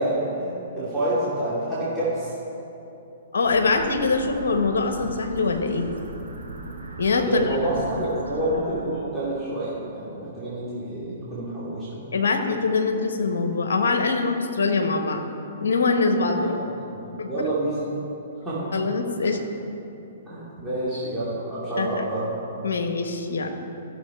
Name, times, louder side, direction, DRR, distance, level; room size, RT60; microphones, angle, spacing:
voice 1, 0.0-2.3 7.3-11.9 16.4-16.5 16.9-17.8 18.4-18.6 19.3-19.4 20.3-22.3, right 1 dB, 5° right, -12 dB, 2.8 m, -28 dB
voice 2, 3.3-5.9 7.0-7.6 7.9-8.0 12.1-15.2 15.6-16.5 17.2-17.5 18.7-19.4 21.8-22.0 22.6-23.6, left 4 dB, 70° left, 5 dB, 1.1 m, -23 dB
sound 1, 3.4-8.8, right 3 dB, 85° right, 1.7 m, -38 dB
14.5 x 7.0 x 4.5 m, 2.9 s
figure-of-eight pair, 120°, 0 cm